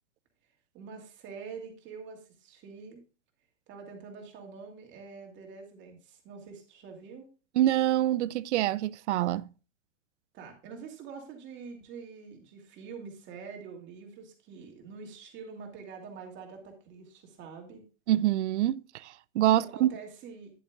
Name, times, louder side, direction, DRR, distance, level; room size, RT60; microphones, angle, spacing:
voice 1, 0.7-3.0 3.7-7.3 10.3-17.8 19.6-20.5, right 5 dB, 30° right, 2.6 m, -45 dB
voice 2, 7.5-9.5 18.1-19.9, right 13 dB, 70° right, 0.5 m, -26 dB
10.0 x 8.6 x 2.4 m
hypercardioid pair, 125°, 37 cm